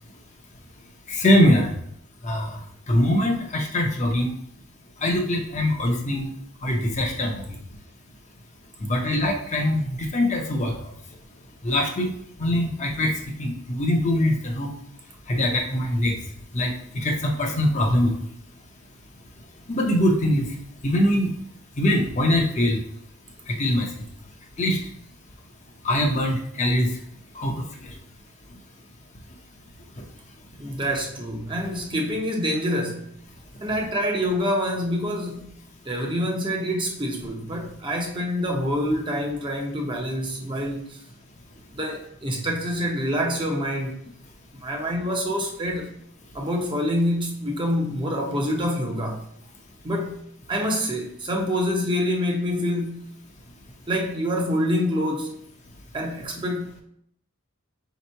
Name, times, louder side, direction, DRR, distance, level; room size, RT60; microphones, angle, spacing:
voice 1, 1.1-1.7 2.2-2.5 2.9-4.3 5.0-6.3 6.6-7.4 8.8-10.7 11.6-12.1 12.4-13.1 13.4-14.7 15.3-16.2 16.5-18.1 19.7-20.5 20.8-21.3 21.8-22.8 23.5-23.9 24.6-24.8 25.8-26.9 27.4-27.5, left 1 dB, 30° left, 0.6 m, -22 dB
voice 2, 30.6-33.1 33.6-35.5 35.8-41.0 41.7-44.0 44.6-45.9 46.3-49.2 49.8-50.2 50.5-53.0 53.9-55.4 55.9-56.8, equal, 20° right, 0.6 m, -26 dB
3.5 x 2.9 x 4.4 m
head